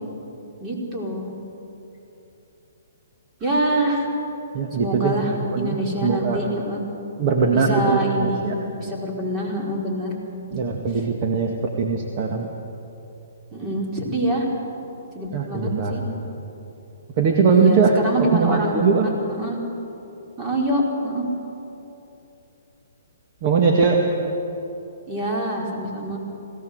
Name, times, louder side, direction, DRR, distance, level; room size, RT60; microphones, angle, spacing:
voice 1, 0.6-1.3 3.4-4.1 4.7-6.8 7.5-8.4 8.7-10.1 13.5-14.5 15.1-16.0 17.5-18.8 19.0-19.1 19.4-19.6 20.4-21.3 25.1-26.2, right 1 dB, 25° right, -2 dB, 4.8 m, -25 dB
voice 2, 4.5-5.2 5.5-6.4 7.2-8.6 10.5-12.5 15.3-16.1 17.2-19.1 23.4-24.1, right 4 dB, 40° right, 1 dB, 2.0 m, -20 dB
20.5 x 17.5 x 8.1 m, 3.0 s
hypercardioid pair, 135°, 0 cm